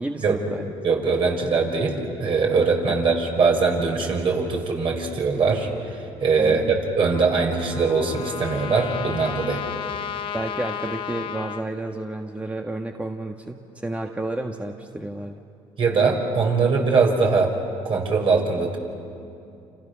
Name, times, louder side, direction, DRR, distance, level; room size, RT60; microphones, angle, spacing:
voice 1, 0.0-0.7 2.9-3.0 6.4-6.7 10.3-15.4, right 2 dB, 10° right, 3 dB, 1.6 m, -31 dB
voice 2, 0.8-9.6 15.8-17.5 17.8-18.8, right 4 dB, 50° right, 1 dB, 6.4 m, -22 dB
Trumpet, 7.1-11.6, left 8 dB, 55° left, 1.3 m, -33 dB
29.0 x 28.5 x 7.0 m, 2.6 s
supercardioid pair, 75°, 11 cm